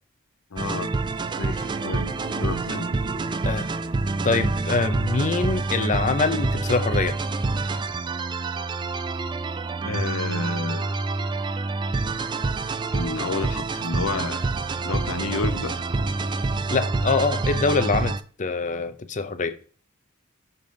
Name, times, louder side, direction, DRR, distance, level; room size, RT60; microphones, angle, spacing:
voice 1, 0.5-0.9 1.4-2.1 2.4-2.9 9.8-11.0 12.9-14.4 14.8-16.0, left 3 dB, 75° left, 0.7 m, -30 dB
sound 1, 0.6-18.2, right 3 dB, 20° right, 0.3 m, -27 dB
sound 2, 1.4-5.4, right 2 dB, 45° right, 1.2 m, -41 dB
voice 2, 4.2-7.2 16.7-19.6, left 4 dB, 35° left, 0.6 m, -24 dB
6.8 x 3.9 x 5.1 m
head